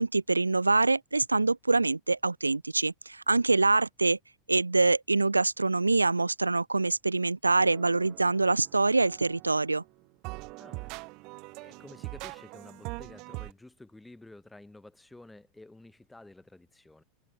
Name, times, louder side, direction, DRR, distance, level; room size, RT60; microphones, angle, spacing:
voice 1, 0.0-4.2 4.5-9.8, right 3 dB, 90° right, 0.4 m, -25 dB
sound 1, 7.6-9.9 10.2-13.5, right 26 dB, 50° right, 1.2 m, -43 dB
voice 2, 10.6-10.9 11.5-17.0, left 2 dB, 5° left, 3.3 m, -51 dB
figure-of-eight pair, 85°, 0 cm